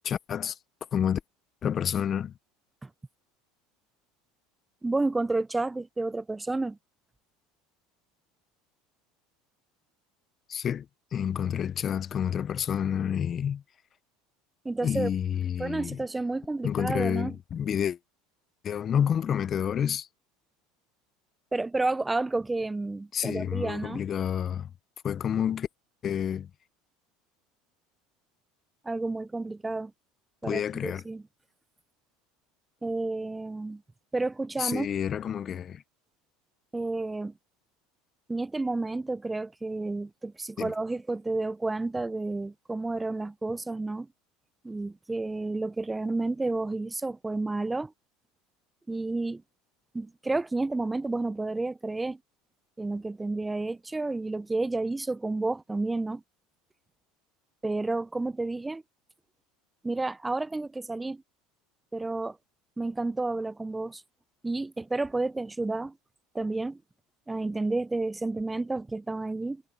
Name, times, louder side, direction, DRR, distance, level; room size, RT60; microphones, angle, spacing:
voice 1, 0.0-0.5 0.9-1.2 1.6-2.3 10.5-10.9 11.1-13.6 14.8-16.0 16.6-18.0 18.6-20.1 23.1-24.7 25.0-25.7 26.0-26.5 30.4-31.0 34.6-35.8 40.6-40.7, left 8 dB, 40° left, 1.0 m, -29 dB
voice 2, 4.8-6.8 14.6-15.1 15.6-17.3 21.5-24.0 28.8-29.9 30.4-31.2 32.8-33.8 34.1-34.9 36.7-37.3 38.3-44.1 44.6-47.9 48.9-49.4 49.9-52.2 52.8-56.2 57.6-58.8 59.8-61.2 61.9-62.4 62.8-64.0 64.4-65.9 66.3-66.8 67.3-69.6, right 2 dB, 15° right, 0.6 m, -30 dB
hypercardioid pair, 80°, 0 cm